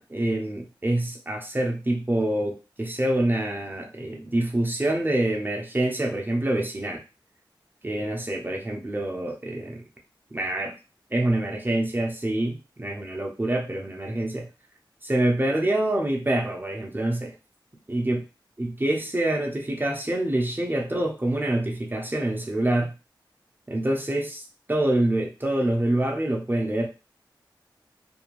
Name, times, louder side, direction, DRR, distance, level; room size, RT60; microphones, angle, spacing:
voice 1, 0.0-7.0 7.8-9.8 10.3-10.7 11.1-14.5 15.0-17.3 17.9-18.2 18.6-22.9 23.7-26.9, right 1 dB, 25° right, 1 dB, 0.6 m, -26 dB
2.5 x 2.1 x 3.0 m, 0.31 s
wide cardioid pair, 65°, 8 cm